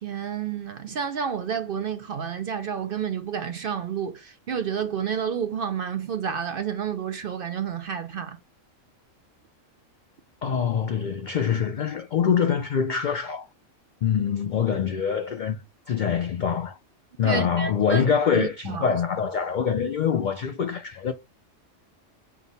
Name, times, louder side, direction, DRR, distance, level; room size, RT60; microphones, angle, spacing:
voice 1, 0.0-8.4 17.2-18.0 18.3-18.9, right 7 dB, 60° right, 0.6 m, -30 dB
voice 2, 10.4-13.5 14.0-15.6 15.9-16.8 17.2-21.1, left 7 dB, 75° left, 0.4 m, -24 dB
5.9 x 2.1 x 3.9 m
omnidirectional pair, 1.3 m